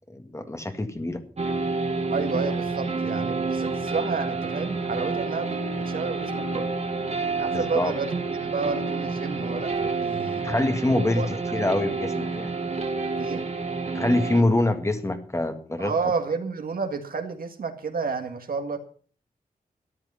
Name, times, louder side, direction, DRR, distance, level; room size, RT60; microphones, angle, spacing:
voice 1, 0.1-1.2 7.5-7.9 10.4-11.2 11.5-12.5 13.9-15.9, left 1 dB, 20° left, 7 dB, 1.7 m, -25 dB
sound 1, 1.4-14.4, right 3 dB, 45° right, 1.9 m, -29 dB
voice 2, 2.1-6.7 7.4-10.4 10.9-11.4 13.2-13.4 15.8-18.8, right 4 dB, 80° right, 6 dB, 1.9 m, -30 dB
13.5 x 10.5 x 5.6 m, 0.43 s
wide cardioid pair, 115°, 15 cm